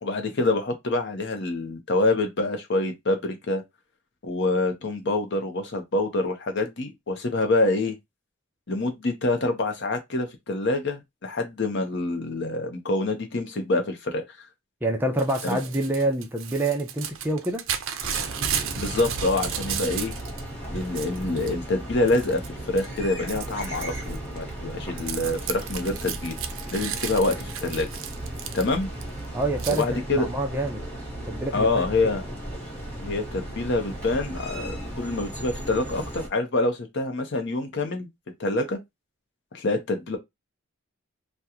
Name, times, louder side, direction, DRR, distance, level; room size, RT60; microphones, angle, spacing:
voice 1, 0.0-3.6 4.2-8.0 8.7-14.5 15.4-15.6 18.8-20.1 20.7-26.3 26.7-27.9 28.5-28.9 29.7-30.3 31.5-32.2 33.0-38.1 38.4-38.8 39.5-40.2, left 2 dB, 55° left, 0.7 m, -26 dB
voice 2, 14.8-17.6 29.3-30.8 31.3-32.1, right 2 dB, 10° right, 0.5 m, -27 dB
Crumpling crinkling / Tearing, 15.2-20.4 20.7-21.5 22.1-22.5 22.8-29.0 29.6-29.8, right 8 dB, 65° right, 0.5 m, -34 dB
sound 1, 18.0-36.3, right 1 dB, 10° left, 1.3 m, -36 dB
2.9 x 2.2 x 3.5 m
head